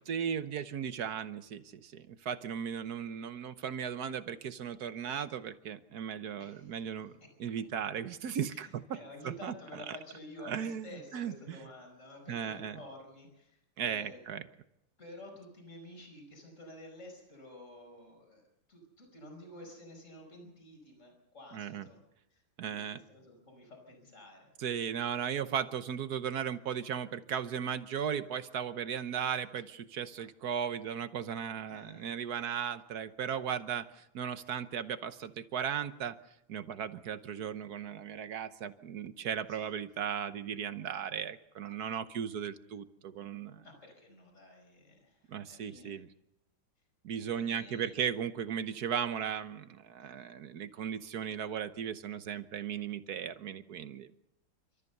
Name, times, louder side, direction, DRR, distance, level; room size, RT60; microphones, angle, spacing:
voice 1, 0.1-7.1 7.4-9.0 9.2-9.8 10.4-11.6 12.3-12.8 13.8-14.4 21.5-21.9 22.6-23.0 24.6-36.2 36.5-43.6 45.3-46.1 47.0-54.1, right 8 dB, 60° right, 12 dB, 1.3 m, -36 dB
voice 2, 6.4-6.7 8.5-14.2 15.0-18.4 18.7-22.0 22.3-24.5 31.7-32.1 39.5-39.7 43.5-46.0 47.2-47.9 50.0-50.1, left 1 dB, 40° left, 2 dB, 5.3 m, -51 dB
29.5 x 14.0 x 6.8 m, 0.87 s
omnidirectional pair, 2.1 m